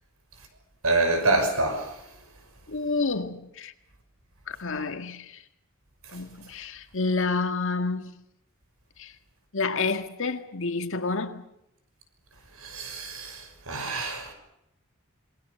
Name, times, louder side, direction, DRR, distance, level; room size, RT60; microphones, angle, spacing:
voice 1, 0.8-1.9 12.6-14.3, right 2 dB, 85° right, 6.1 m, -26 dB
voice 2, 2.7-3.7 4.5-5.4 6.1-8.1 9.0-9.1 9.5-11.4, left 3 dB, 65° left, 1.8 m, -29 dB
27.5 x 20.5 x 6.8 m
head